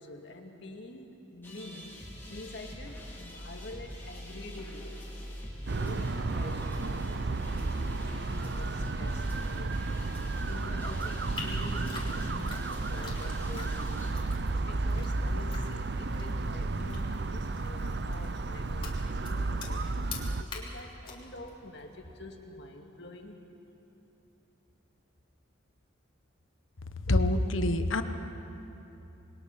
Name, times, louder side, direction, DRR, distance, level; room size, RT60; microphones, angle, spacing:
voice 1, 0.0-5.3 5.6-9.8 10.4-14.1 14.5-23.4, left 2 dB, 60° left, 2 dB, 2.1 m, -47 dB
sound 1, 1.4-14.1, equal, 10° left, 3.4 m, -44 dB
sound 2, 5.7-20.4, right 3 dB, 55° right, 0.6 m, -32 dB
sound 3, 11.3-22.1, left 4 dB, 25° left, 3.0 m, -47 dB
voice 2, 27.1-28.0, left 1 dB, 85° left, 8 dB, 1.2 m, -25 dB
27.0 x 21.5 x 6.0 m, 2.9 s
head